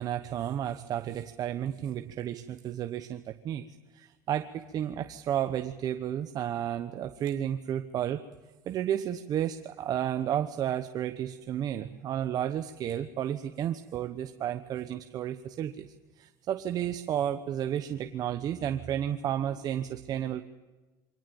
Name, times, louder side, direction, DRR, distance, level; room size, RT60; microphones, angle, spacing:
voice 1, 0.0-3.6 3.9-8.3 8.7-20.4, right 10 dB, 40° right, 9 dB, 1.0 m, -32 dB
24.0 x 18.5 x 7.1 m, 1.2 s
supercardioid pair, 125°, 10 cm